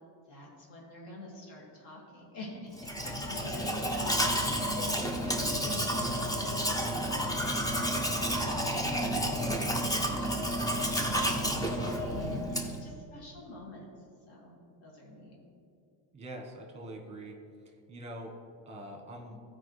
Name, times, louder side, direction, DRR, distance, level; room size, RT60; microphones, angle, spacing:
voice 1, 0.3-13.9 14.3-15.4, left 2 dB, 55° left, -3 dB, 2.1 m, -47 dB
Domestic sounds home sounds, 2.8-12.9, equal, 10° left, 0.4 m, -30 dB
voice 2, 16.1-17.4 17.9-18.3 18.7-19.4, right 1 dB, 15° right, 2 dB, 1.1 m, -44 dB
14.5 x 4.9 x 3.2 m, 2.4 s
cardioid pair, 155°, 47 cm